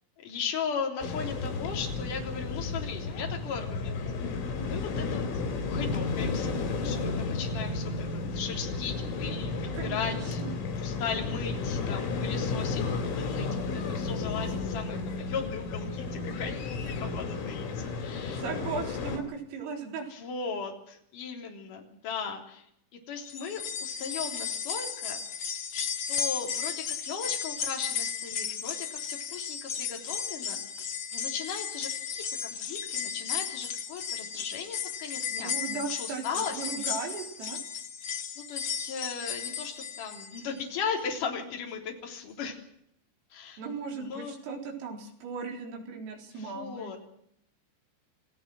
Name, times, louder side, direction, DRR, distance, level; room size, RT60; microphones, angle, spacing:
voice 1, 0.2-4.0 4.6-5.2 5.6-8.1 8.3-10.4 10.8-13.5 13.7-18.4 20.1-22.7 23.1-25.2 25.7-30.6 31.1-35.5 35.9-36.6 38.4-42.6 43.3-43.6 43.9-44.4 46.4-47.0, left 6 dB, 40° left, 1 dB, 4.5 m, -37 dB
sound 1, 1.0-19.2, left 4 dB, 90° left, 6.7 m, -32 dB
voice 2, 9.7-10.5 18.3-20.1 35.4-37.6 43.6-46.9, right 5 dB, 75° right, 1 dB, 6.6 m, -37 dB
sound 2, 23.3-40.6 41.0-41.1 42.2-42.3, left 7 dB, 70° left, 1.6 m, -35 dB
29.5 x 16.5 x 6.3 m, 0.72 s
omnidirectional pair, 6.0 m